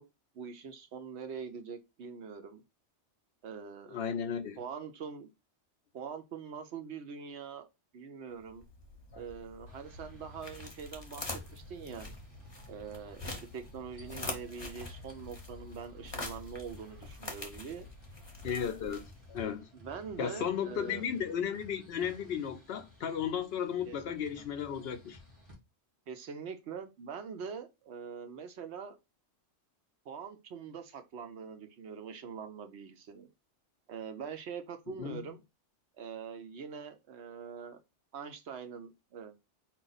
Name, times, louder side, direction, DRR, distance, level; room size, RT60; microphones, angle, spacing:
voice 1, 0.3-2.6 3.4-4.0 4.6-5.3 5.9-7.7 7.9-8.6 9.1-12.1 12.7-17.9 19.7-21.0 23.9-24.0 24.4-24.5 26.1-29.0 30.1-33.3 33.9-35.4 36.0-37.8 38.1-39.3, right 6 dB, 70° right, 1.0 m, -43 dB
voice 2, 3.9-4.6 18.4-19.7 20.2-25.2 35.0-35.2, left 8 dB, 65° left, 0.7 m, -34 dB
sound 1, 8.4-19.4, left 2 dB, 25° left, 0.8 m, -45 dB
sound 2, 9.7-25.5, left 1 dB, 30° right, 1.8 m, -56 dB
4.7 x 2.4 x 3.9 m
omnidirectional pair, 1.2 m